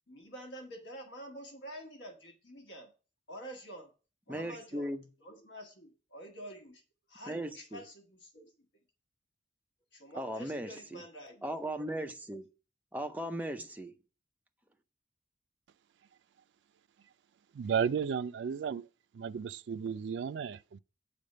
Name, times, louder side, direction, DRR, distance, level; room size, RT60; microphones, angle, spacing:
voice 1, 0.1-2.9 3.3-3.9 4.3-4.9 5.2-6.8 7.1-8.5 9.9-11.5, equal, 80° left, 1.3 m, -48 dB
voice 2, 4.3-5.0 7.3-7.8 10.1-11.0 11.4-12.5 12.9-13.9, right 1 dB, 10° right, 0.6 m, -37 dB
voice 3, 17.5-18.9 19.1-20.8, right 7 dB, 80° right, 0.3 m, -33 dB
9.2 x 3.5 x 6.5 m
head